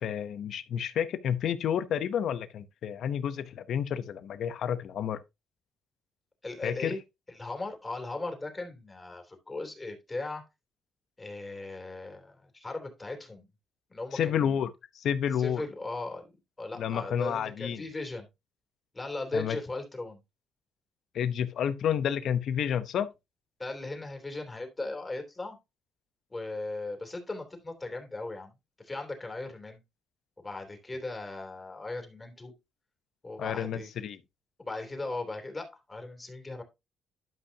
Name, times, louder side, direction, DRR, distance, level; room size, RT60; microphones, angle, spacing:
voice 1, 0.0-5.2 6.6-7.0 14.1-15.6 16.8-17.9 19.3-19.6 21.1-23.1 33.4-34.2, left 8 dB, 70° left, 0.8 m, -30 dB
voice 2, 6.4-7.0 7.3-10.4 11.2-13.5 13.9-14.6 15.4-16.2 16.6-18.3 18.9-20.2 23.6-25.6 26.3-28.5 28.8-29.8 30.4-32.5 33.2-33.9 34.6-36.6, left 2 dB, 25° left, 3.2 m, -38 dB
12.0 x 5.5 x 2.8 m
supercardioid pair, 75°, 0 cm